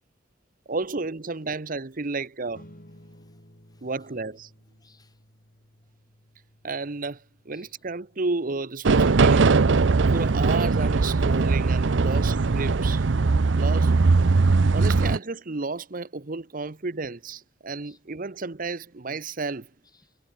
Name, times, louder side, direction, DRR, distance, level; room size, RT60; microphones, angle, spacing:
voice 1, 0.7-2.6 3.8-4.5 6.6-9.6 10.1-13.0 13.5-13.9 14.7-19.7, right 3 dB, 50° right, 0.9 m, -32 dB
sound 1, 2.5-13.3, equal, 50° left, 6.2 m, -57 dB
voice 2, 3.0-3.9 4.8-5.2 7.5-7.8 12.1-12.2 17.8-18.0 19.8-20.2, left 4 dB, 20° left, 5.5 m, -64 dB
sound 2, 8.8-15.2, right 4 dB, 90° right, 0.6 m, -20 dB
head